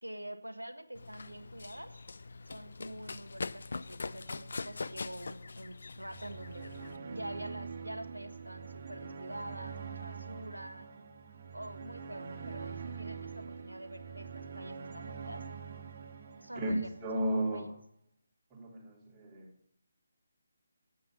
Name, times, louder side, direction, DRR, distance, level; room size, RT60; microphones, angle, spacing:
voice 1, 0.0-1.9 2.5-6.7 7.1-10.9 11.5-15.4 16.4-17.7, right 1 dB, 90° right, 8 dB, 1.4 m, -46 dB
Run, 0.9-7.0, left 3 dB, 60° left, 0.4 m, -43 dB
sound 1, 6.0-17.3, right 5 dB, 45° right, 2.1 m, -44 dB
voice 2, 16.5-17.7 18.5-19.5, right 1 dB, 15° right, -4 dB, 3.2 m, -34 dB
10.5 x 8.5 x 6.1 m, 0.67 s
figure-of-eight pair, 150°, 0 cm